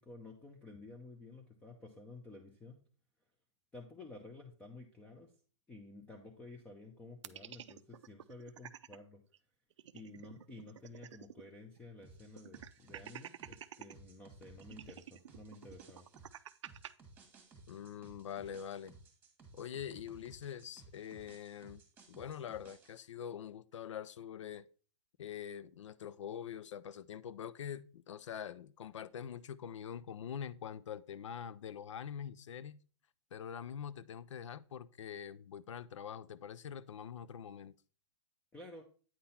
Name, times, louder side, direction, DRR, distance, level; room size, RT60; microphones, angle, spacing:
voice 1, 0.0-2.8 3.7-5.3 5.7-9.2 9.9-16.1 38.5-38.8, left 2 dB, 10° left, 0.6 m, -52 dB
sound 1, 7.2-9.0 9.3-9.4 9.7-11.5 11.8-11.9 12.4-13.9 14.6-16.9, right 10 dB, 75° right, 0.4 m, -50 dB
sound 2, 12.0-23.0, right 3 dB, 10° right, 1.5 m, -59 dB
voice 2, 17.7-18.9 19.5-21.8 22.1-24.7 25.2-32.8 33.3-37.7, left 8 dB, 80° left, 0.5 m, -44 dB
8.7 x 3.9 x 4.1 m
hypercardioid pair, 145°, 16 cm